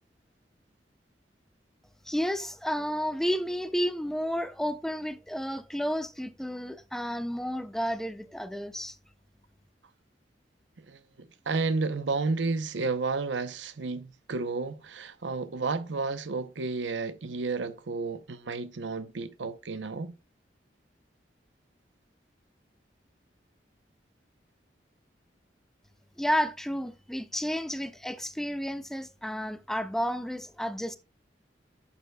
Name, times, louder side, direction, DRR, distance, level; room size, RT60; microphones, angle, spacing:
voice 1, 2.1-9.0 26.2-31.0, equal, ahead, 0.4 m, -31 dB
voice 2, 10.8-20.2, right 3 dB, 90° right, 0.7 m, -32 dB
11.0 x 6.8 x 2.2 m
head